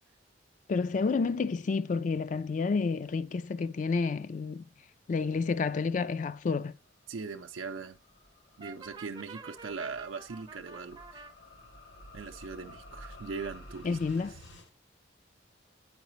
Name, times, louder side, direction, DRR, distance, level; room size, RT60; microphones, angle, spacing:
voice 1, 0.7-4.7 5.1-6.7 13.8-14.3, left 4 dB, 40° left, 0.3 m, -30 dB
sound 1, 6.9-14.7, left 1 dB, 65° left, 1.2 m, -52 dB
voice 2, 7.1-8.0 8.6-11.3 12.1-14.3, right 4 dB, 90° right, 0.5 m, -40 dB
Brass instrument, 8.6-11.3, right 4 dB, 25° right, 0.5 m, -48 dB
8.1 x 4.8 x 3.0 m
head